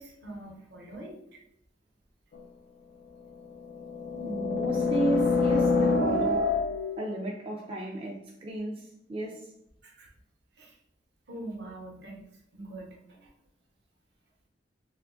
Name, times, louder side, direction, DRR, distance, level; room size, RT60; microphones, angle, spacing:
voice 1, 0.0-1.4 9.8-10.1 10.6-10.8 11.3-12.2 12.5-13.3, right 1 dB, 65° right, 0 dB, 0.8 m, -43 dB
sound 1, 2.3-2.4 3.5-7.0, left 3 dB, 60° left, 0.3 m, -26 dB
voice 2, 4.1-6.6 7.0-9.5, right 2 dB, 30° right, -2 dB, 0.3 m, -33 dB
2.6 x 2.3 x 3.6 m, 0.76 s
head